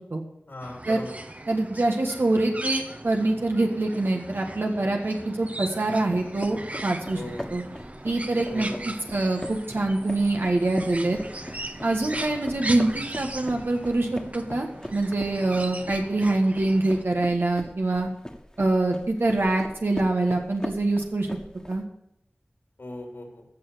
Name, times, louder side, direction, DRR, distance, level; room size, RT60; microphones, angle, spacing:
voice 1, 0.5-1.1 7.1-7.4 8.5-8.8 12.1-12.5 16.7-16.8 19.4-19.5 22.8-23.4, left 1 dB, 80° left, 1 dB, 3.1 m, -39 dB
sound 1, 0.6-17.0, right 2 dB, 40° right, 1.0 m, -38 dB
voice 2, 1.5-7.2 7.5-7.6 8.0-11.2 11.8-14.7 14.9-18.1 18.6-21.3 21.7-21.8, right 2 dB, 80° right, 1 dB, 1.6 m, -25 dB
sound 2, 6.1-21.8, left 1 dB, 20° left, 1.5 m, -40 dB
15.0 x 6.3 x 6.9 m, 0.80 s
wide cardioid pair, 45°, 4 cm